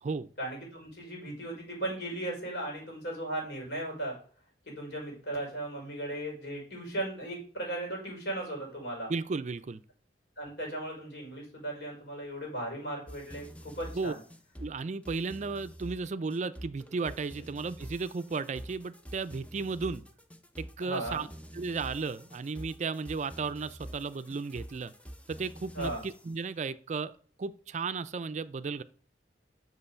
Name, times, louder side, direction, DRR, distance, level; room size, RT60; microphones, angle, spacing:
voice 1, 0.4-4.2 4.7-9.1 10.4-14.2 20.8-21.3 25.7-26.0, right 1 dB, 75° left, 5.1 m, -37 dB
voice 2, 9.1-9.8 13.9-14.1 14.6-20.0 20.6-21.3 21.5-24.9 25.3-27.1 27.4-28.8, right 4 dB, 40° right, 0.4 m, -34 dB
sound 1, 13.1-26.3, equal, 10° left, 0.6 m, -47 dB
6.1 x 5.7 x 6.8 m
head